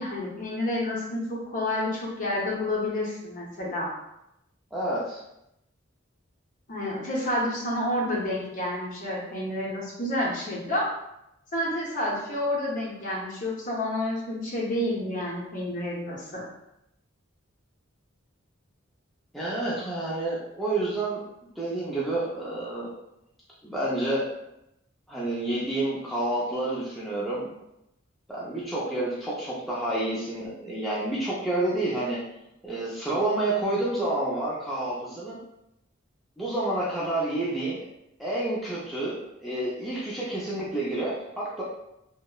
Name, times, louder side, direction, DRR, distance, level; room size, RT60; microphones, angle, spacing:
voice 1, 0.0-3.9 6.7-10.9 11.5-16.4, left 1 dB, 40° left, -4 dB, 0.7 m, -29 dB
voice 2, 4.7-5.2 19.3-21.2 21.6-22.9 23.6-24.2 25.1-27.5 28.3-32.2 32.6-35.4 36.4-37.8 38.2-41.6, right 2 dB, ahead, -8 dB, 0.4 m, -29 dB
2.8 x 2.0 x 2.2 m, 0.84 s
head